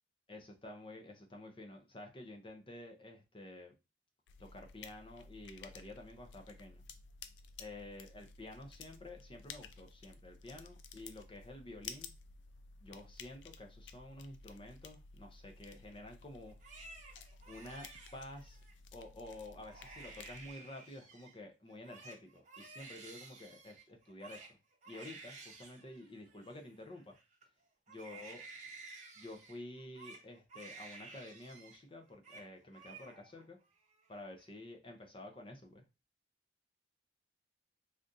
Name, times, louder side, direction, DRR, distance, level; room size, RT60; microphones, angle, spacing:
voice 1, 0.3-3.7 4.4-6.8 7.6-12.1 12.8-16.5 17.5-17.9 18.1-18.6 18.9-24.6 24.9-27.1 27.9-28.5 29.2-33.6 34.1-35.8, left 1 dB, 30° left, 3 dB, 0.6 m, -50 dB
sound 1, 4.3-20.5, left 5 dB, 75° left, 0.4 m, -54 dB
Crying sobbing, 16.5-18.7 19.2-19.4 19.6-21.4 21.7-27.4 27.9-31.8 32.1-32.5 32.7-33.4 33.8-34.4, right 3 dB, 40° right, 0.8 m, -54 dB
3.5 x 2.6 x 2.6 m, 0.27 s
head